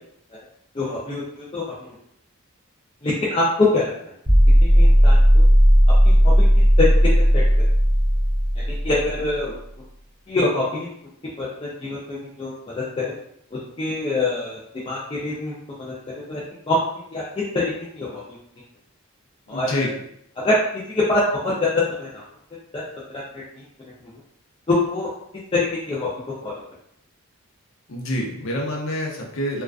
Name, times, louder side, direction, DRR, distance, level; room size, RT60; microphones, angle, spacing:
voice 1, 0.7-1.9 3.0-3.4 3.7-3.9 4.6-5.4 6.0-6.1 6.8-6.9 7.3-7.4 8.8-9.6 10.3-10.9 11.4-12.5 13.0-13.1 13.8-14.6 14.8-15.5 15.8-15.9 16.3-16.4 16.7-16.8 17.1-17.2 17.6-18.4 19.5-19.9 20.4-20.5 21.1-22.2 22.7-22.8 23.1-23.2 23.5-23.6 24.7-25.1 25.9-26.1 26.4-26.5, left 2 dB, 25° left, -7 dB, 0.4 m, -24 dB
sound 1, 4.2-9.3, equal, 15° right, 1.0 m, -15 dB
voice 2, 19.5-19.9 27.9-29.6, equal, 70° left, -1 dB, 0.6 m, -27 dB
2.3 x 2.3 x 2.3 m, 0.70 s
head